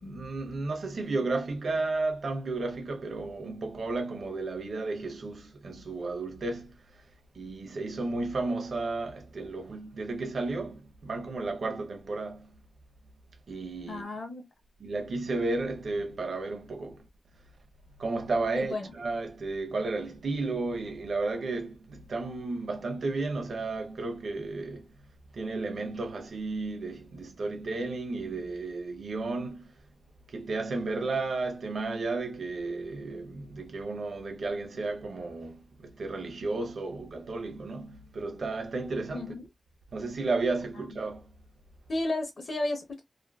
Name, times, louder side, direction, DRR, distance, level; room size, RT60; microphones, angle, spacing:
voice 1, 0.0-6.8 7.3-12.6 13.5-14.1 14.8-17.1 18.0-24.9 25.3-29.7 30.3-39.3 39.9-41.3, right 3 dB, 55° right, 0.6 m, -33 dB
voice 2, 13.9-14.5 18.6-18.9 39.1-39.5 40.8-41.0 41.9-43.0, left 2 dB, 45° left, 0.7 m, -33 dB
2.5 x 2.5 x 2.2 m
wide cardioid pair, 155°, 0 cm